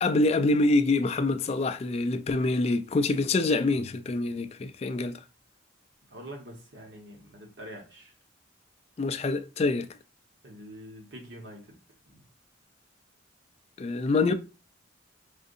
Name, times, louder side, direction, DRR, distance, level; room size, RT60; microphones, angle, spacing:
voice 1, 0.0-5.2 9.0-10.0 13.8-14.3, left 2 dB, 35° left, 0.3 m, -26 dB
voice 2, 6.1-8.1 10.4-11.8 12.1-12.2, equal, 65° right, 1.2 m, -45 dB
5.0 x 2.6 x 2.6 m
head